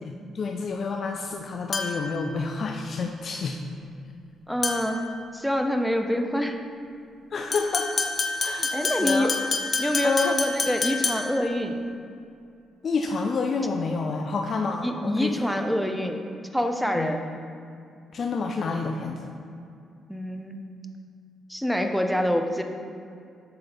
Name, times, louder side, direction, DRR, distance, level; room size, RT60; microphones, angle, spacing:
voice 1, 0.0-3.6 7.3-7.9 8.4-9.3 10.0-10.4 12.8-15.6 17.0-17.1 18.1-19.3, left 4 dB, 55° left, 3 dB, 0.4 m, -29 dB
sound 1, 1.7-2.2 4.6-5.0 7.5-11.5, left 3 dB, 40° left, 0.8 m, -28 dB
voice 2, 4.5-6.6 8.7-9.3 9.8-11.8 14.8-16.2 16.5-17.2 20.1-20.6 21.5-22.6, equal, ahead, 4 dB, 0.6 m, -26 dB
6.8 x 4.1 x 4.0 m, 2.5 s
supercardioid pair, 65°, 0 cm